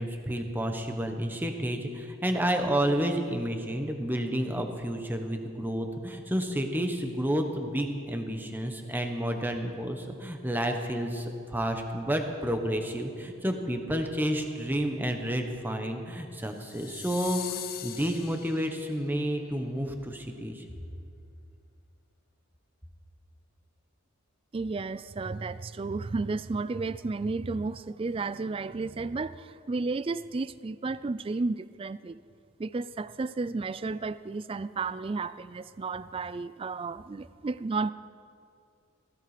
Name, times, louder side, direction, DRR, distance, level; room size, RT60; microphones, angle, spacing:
voice 1, 0.0-20.6, equal, 10° right, 4 dB, 1.2 m, -30 dB
sound 1, 16.6-19.0, left 11 dB, 45° left, 0.8 m, -41 dB
voice 2, 24.5-32.2 32.6-37.9, right 3 dB, 25° right, 16 dB, 0.3 m, -32 dB
16.5 x 16.5 x 5.1 m, 2.4 s
head